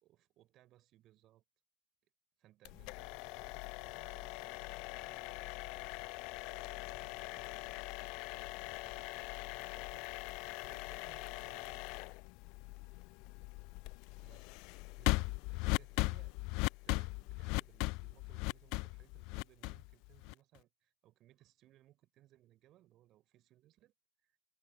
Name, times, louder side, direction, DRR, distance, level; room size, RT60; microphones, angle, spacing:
voice 1, 0.0-1.4 2.4-6.0 6.3-8.0 8.3-10.1 10.5-12.1 14.1-14.6 14.9-23.9 24.2-24.3, right 14 dB, 35° right, 4.8 m, -65 dB
sound 1, 2.6-20.6, left 27 dB, 45° left, 0.7 m, -40 dB
figure-of-eight pair, 90°, 0 cm